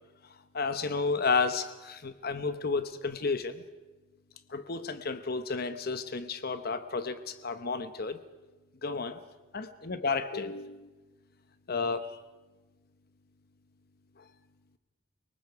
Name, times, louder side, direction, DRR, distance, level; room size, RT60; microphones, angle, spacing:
voice 1, 0.5-3.6 4.5-8.2 8.8-9.2 9.5-10.9 11.7-12.1 14.2-14.3, left 4 dB, 50° left, 10 dB, 1.0 m, -32 dB
29.5 x 19.0 x 4.8 m, 1.2 s
head